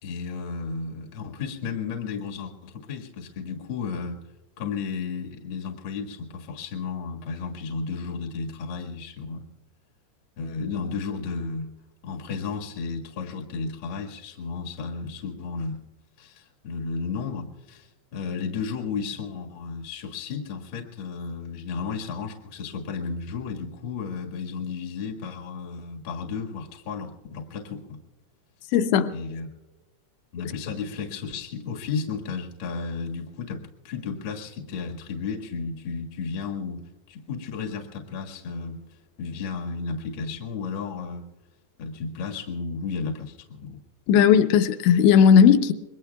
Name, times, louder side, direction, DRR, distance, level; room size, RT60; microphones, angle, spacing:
voice 1, 0.0-4.2 4.6-9.5 10.4-11.7 12.0-15.8 16.2-28.0 29.1-29.5 30.3-38.8 39.2-41.2 41.8-43.8, left 5 dB, 55° left, 1.4 m, -33 dB
voice 2, 28.7-29.1 44.1-45.7, left 8 dB, 90° left, 3.1 m, -16 dB
26.5 x 22.0 x 2.3 m
omnidirectional pair, 5.0 m